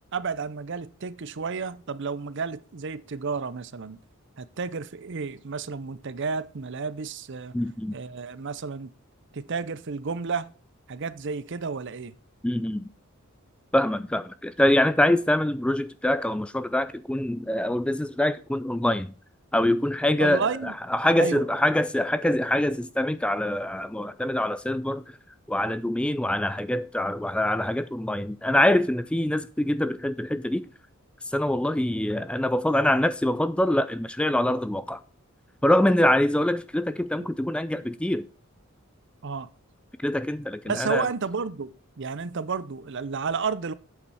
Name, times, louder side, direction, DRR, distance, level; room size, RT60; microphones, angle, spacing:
voice 1, 0.1-4.0 4.4-7.6 7.9-8.9 9.3-10.5 10.9-12.1 20.2-20.7 21.2-21.5 37.2-37.3 39.2-39.5 40.7-43.7, right 5 dB, 55° right, 0.6 m, -31 dB
voice 2, 7.5-8.0 12.4-12.9 13.7-19.1 19.5-25.2 25.5-30.7 31.3-35.0 35.6-38.3 40.0-41.1, left 1 dB, 5° left, 0.3 m, -24 dB
8.4 x 6.9 x 4.7 m
head